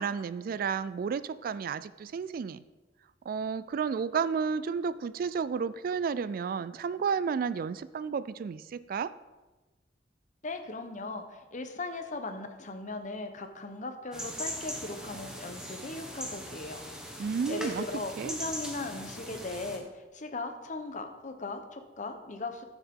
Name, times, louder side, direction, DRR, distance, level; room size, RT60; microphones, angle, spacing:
voice 1, 0.0-2.6 3.3-9.1 17.2-17.8 18.2-18.3, right 6 dB, 55° right, 16 dB, 0.3 m, -32 dB
voice 2, 10.4-16.8 17.5-22.6, left 2 dB, 45° left, 7 dB, 0.9 m, -38 dB
sound 1, 14.1-19.8, equal, 5° right, 1.3 m, -40 dB
14.0 x 7.2 x 3.7 m, 1.2 s
head